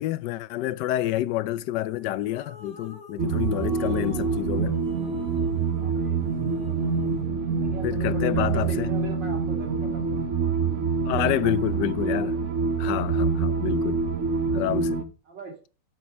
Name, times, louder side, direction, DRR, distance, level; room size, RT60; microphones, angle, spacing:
voice 1, 0.0-4.7 7.8-8.9 11.1-12.4 12.8-14.0 14.5-15.0, left 14 dB, 75° left, 1.2 m, -28 dB
sound 1, 1.9-7.2, left 2 dB, 35° left, 1.6 m, -42 dB
sound 2, 3.2-15.0, right 5 dB, 50° right, 1.1 m, -26 dB
voice 2, 5.7-6.2 7.6-10.2 11.1-11.9 15.3-15.6, right 4 dB, 75° right, 3.1 m, -40 dB
7.7 x 5.2 x 6.1 m
omnidirectional pair, 1.9 m